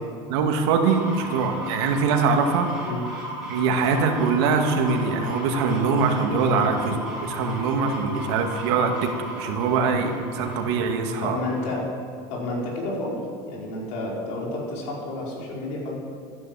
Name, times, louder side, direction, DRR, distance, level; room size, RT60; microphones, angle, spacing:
voice 1, 0.3-2.7 3.5-11.4, right 4 dB, 85° right, 3 dB, 1.9 m, -23 dB
sound 1, 0.8-11.8, right 1 dB, 5° right, 4.6 m, -36 dB
voice 2, 11.2-11.8 12.3-16.0, left 2 dB, 65° left, -3 dB, 4.9 m, -30 dB
13.0 x 11.0 x 7.5 m, 2.2 s
cardioid pair, 140°, 13 cm